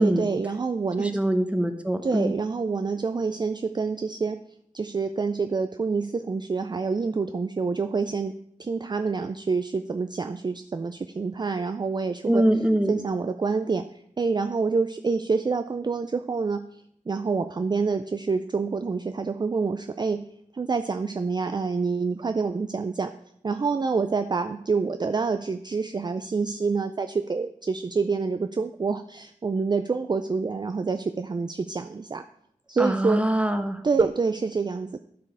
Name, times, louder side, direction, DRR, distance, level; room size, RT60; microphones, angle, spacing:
voice 1, 0.0-1.2 2.0-4.4 4.7-8.3 8.6-12.4 12.9-13.9 14.2-23.1 23.4-32.2 32.7-33.2 33.8-35.0, right 4 dB, 35° right, 9 dB, 0.3 m, -27 dB
voice 2, 1.0-2.3 12.3-13.0 32.8-33.8, right 1 dB, 10° right, 8 dB, 0.8 m, -23 dB
12.0 x 4.7 x 4.8 m, 0.70 s
wide cardioid pair, 95°, 13 cm